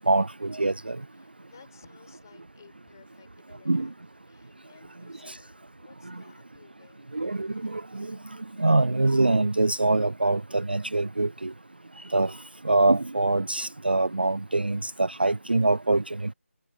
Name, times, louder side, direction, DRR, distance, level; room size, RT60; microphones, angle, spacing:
voice 1, 0.1-1.0 3.7-3.9 5.3-5.4 7.1-8.2 8.6-11.5 12.1-12.4 12.6-16.3, right 2 dB, 45° right, 0.3 m, -24 dB
voice 2, 1.1-7.2, left 7 dB, 15° left, 7.8 m, -57 dB
figure-of-eight pair, 180°, 7 cm